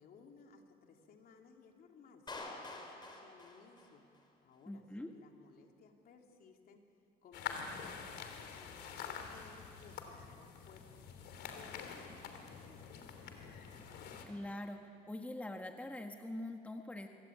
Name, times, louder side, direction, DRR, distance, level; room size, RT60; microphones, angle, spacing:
voice 1, 0.0-6.8 7.2-11.0 11.3-13.1, left 5 dB, 60° left, 2 dB, 3.3 m, -61 dB
Clapping, 2.3-4.3, left 2 dB, 25° left, 4.7 m, -48 dB
voice 2, 4.7-5.1 14.2-14.8 15.1-17.1, left 1 dB, 10° left, 4 dB, 1.7 m, -43 dB
sound 1, 7.3-14.3, left 6 dB, 80° left, 3.2 m, -46 dB
25.5 x 23.0 x 8.9 m, 2.5 s
cardioid pair, 110°, 17 cm